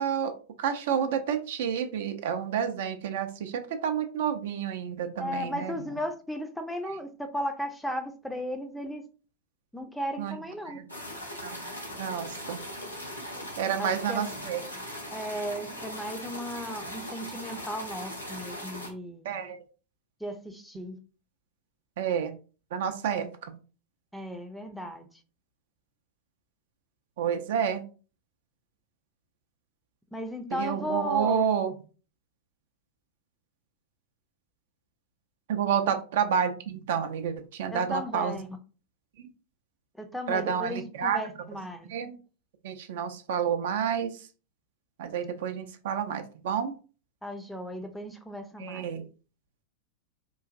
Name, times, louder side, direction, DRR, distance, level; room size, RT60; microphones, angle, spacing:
voice 1, 0.0-5.7 6.8-6.9 10.2-10.4 10.7-10.9 11.4-11.7 12.0-12.6 13.6-14.6 19.2-19.6 22.0-22.3 22.7-23.3 27.2-27.8 30.5-31.7 35.5-38.3 39.2-39.3 40.3-41.2 41.8-42.1 42.6-44.3 45.0-46.7 48.6-49.0, right 8 dB, 55° right, 0.4 m, -29 dB
voice 2, 5.2-9.0 9.7-10.8 13.8-14.4 15.1-19.3 20.2-21.0 24.1-25.1 30.1-31.5 37.7-38.5 40.0-41.9 47.2-48.9, equal, 5° left, 0.4 m, -35 dB
sound 1, 10.9-18.9, equal, 90° left, 0.9 m, -39 dB
3.8 x 2.4 x 2.4 m
figure-of-eight pair, 90°, 0 cm